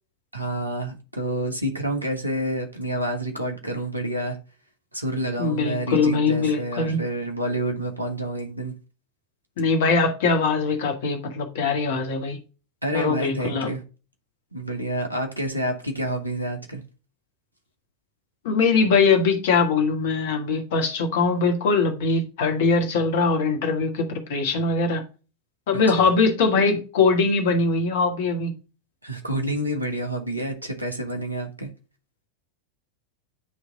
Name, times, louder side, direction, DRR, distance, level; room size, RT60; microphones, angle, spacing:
voice 1, 0.3-4.4 4.9-8.7 12.8-13.8 14.5-16.8 25.7-26.1 29.0-31.7, right 1 dB, 85° right, 1.4 m, -28 dB
voice 2, 5.4-7.0 9.6-12.4 12.9-13.7 18.4-25.0 25.7-28.5, left 4 dB, 55° left, 1.5 m, -22 dB
9.6 x 3.3 x 3.7 m
figure-of-eight pair, 90°, 0 cm